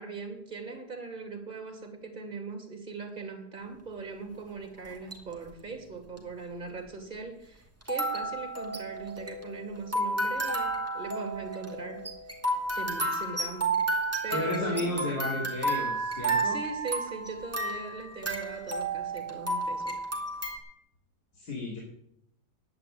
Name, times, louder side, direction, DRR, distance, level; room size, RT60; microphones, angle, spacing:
voice 1, 0.0-12.1 12.7-13.8 14.2-15.5 16.4-20.0, right 4 dB, 30° right, 4 dB, 2.6 m, -40 dB
sound 1, 4.8-5.3 6.2-6.3 7.8-20.6, right 2 dB, 10° right, 2.4 m, -32 dB
voice 2, 14.3-16.6 21.3-21.8, left 2 dB, 75° left, -2 dB, 3.2 m, -33 dB
11.0 x 8.8 x 8.6 m, 0.76 s
omnidirectional pair, 1.7 m